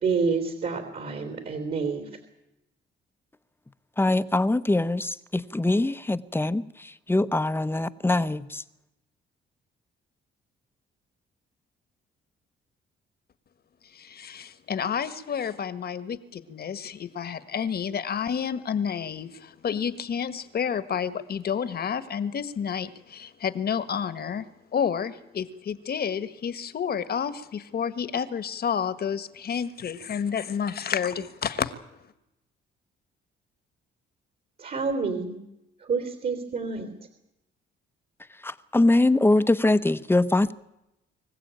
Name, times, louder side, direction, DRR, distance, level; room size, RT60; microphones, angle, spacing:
voice 1, 0.0-2.1 34.6-35.4 35.8-36.9, right 5 dB, 50° right, 3.5 m, -28 dB
voice 2, 4.0-8.6 38.4-40.5, left 2 dB, 10° left, 1.0 m, -23 dB
voice 3, 13.9-24.5 24.7-31.7, left 7 dB, 50° left, 1.6 m, -30 dB
25.0 x 15.5 x 9.0 m
cardioid pair, 90°, 20 cm